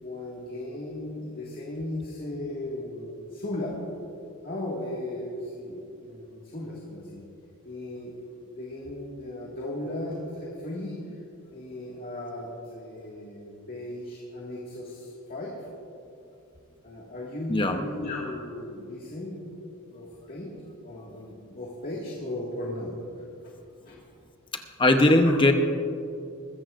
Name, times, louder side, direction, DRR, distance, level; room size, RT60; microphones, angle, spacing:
voice 1, 0.0-3.8 4.4-7.2 7.6-8.1 8.5-11.2 11.5-15.5 16.8-19.4 19.9-20.5 20.8-23.0 23.8-24.0 25.3-25.4, left 1 dB, 45° left, -4 dB, 2.0 m, -36 dB
voice 2, 17.5-17.8 24.8-25.5, left 1 dB, 25° left, 5 dB, 0.8 m, -19 dB
21.5 x 15.0 x 2.6 m, 2.6 s
head